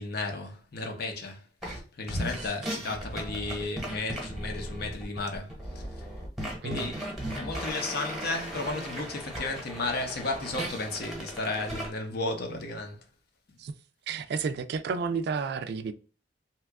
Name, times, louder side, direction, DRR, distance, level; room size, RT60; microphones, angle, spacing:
voice 1, 0.0-5.8 6.6-7.1 7.4-13.0, left 2 dB, 60° left, 0.7 m, -34 dB
sound 1, 1.6-1.8 2.1-11.9, equal, ahead, 1.0 m, -36 dB
voice 2, 14.1-15.9, right 5 dB, 60° right, 0.3 m, -31 dB
2.9 x 2.3 x 3.4 m
head